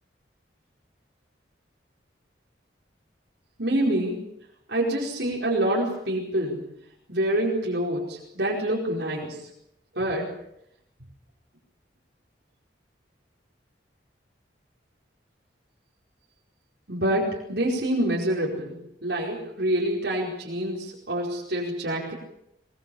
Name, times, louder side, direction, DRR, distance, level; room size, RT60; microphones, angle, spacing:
voice 1, 3.6-4.2 4.7-6.6 7.1-9.5 9.9-10.3 16.9-22.1, right 1 dB, 70° right, -4 dB, 4.9 m, -26 dB
22.5 x 22.0 x 7.1 m, 0.80 s
head